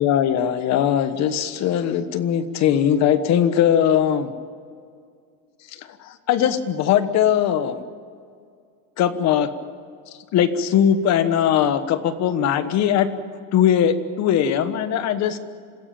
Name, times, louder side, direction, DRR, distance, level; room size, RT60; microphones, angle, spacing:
voice 1, 0.0-4.3 6.0-7.8 9.0-9.5 10.3-13.1 13.5-15.4, left 9 dB, 35° left, 12 dB, 1.3 m, -20 dB
27.0 x 15.5 x 8.9 m, 2.2 s
supercardioid pair, 155°, 48 cm